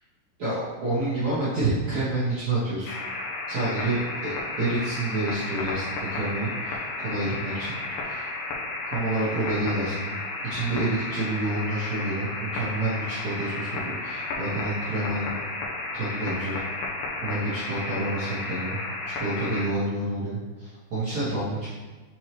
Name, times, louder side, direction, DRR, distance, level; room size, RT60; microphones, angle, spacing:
voice 1, 0.4-2.9 3.5-4.0 4.6-8.3 8.9-10.1 10.4-15.3 15.9-16.5 17.2-18.8 19.1-21.7, right 2 dB, 65° right, -12 dB, 1.7 m, -28 dB
sound 1, 2.8-19.7, left 2 dB, 80° left, 2.2 m, -33 dB
7.5 x 4.6 x 3.1 m, 1.3 s
omnidirectional pair, 5.6 m